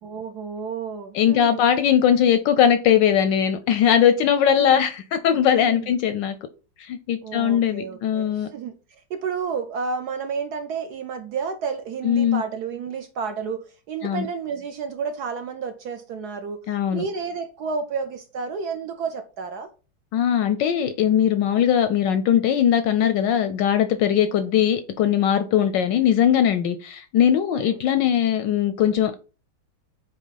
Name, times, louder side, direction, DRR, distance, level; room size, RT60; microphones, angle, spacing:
voice 1, 0.0-1.6 4.6-4.8 5.6-5.9 7.2-16.6 16.9-19.7 24.1-24.2 27.5-27.8, right 5 dB, 70° right, 0.9 m, -31 dB
voice 2, 1.1-6.4 6.8-8.5 12.0-12.4 14.0-14.3 16.7-17.0 20.1-29.1, left 9 dB, 75° left, 1.1 m, -20 dB
8.2 x 2.9 x 4.0 m
omnidirectional pair, 2.3 m